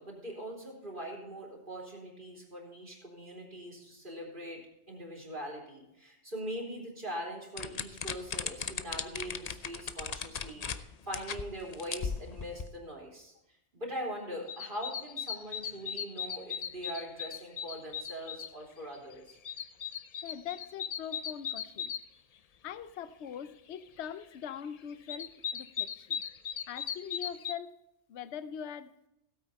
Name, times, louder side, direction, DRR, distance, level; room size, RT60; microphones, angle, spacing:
voice 1, 0.0-4.6 4.9-13.3 13.7-19.4, equal, 40° right, -1 dB, 3.5 m, -42 dB
sound 1, 7.6-10.8 11.1-11.4 11.7-12.7, left 6 dB, 45° left, 0.6 m, -36 dB
sound 2, 14.5-18.5 18.9-22.0 24.5-24.6 24.9-27.5, left 8 dB, 85° left, 0.3 m, -38 dB
voice 2, 20.2-21.9 22.6-26.2 26.7-27.7 28.1-28.9, left 8 dB, 65° left, 14 dB, 0.9 m, -42 dB
16.5 x 8.8 x 4.2 m, 0.87 s
omnidirectional pair, 1.3 m